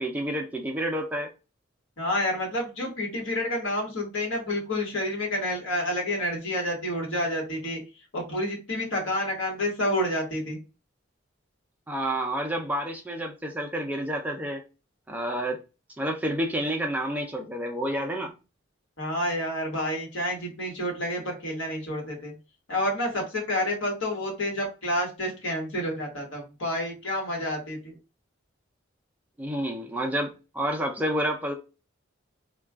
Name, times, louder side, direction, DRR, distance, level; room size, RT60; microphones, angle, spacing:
voice 1, 0.0-1.3 11.9-14.6 15.1-15.6 16.0-18.3 29.4-31.5, right 1 dB, 10° right, 0.4 m, -29 dB
voice 2, 2.0-7.8 8.1-10.6 19.0-22.3 22.7-27.9, left 1 dB, 85° left, 1.3 m, -29 dB
2.3 x 2.2 x 3.4 m
head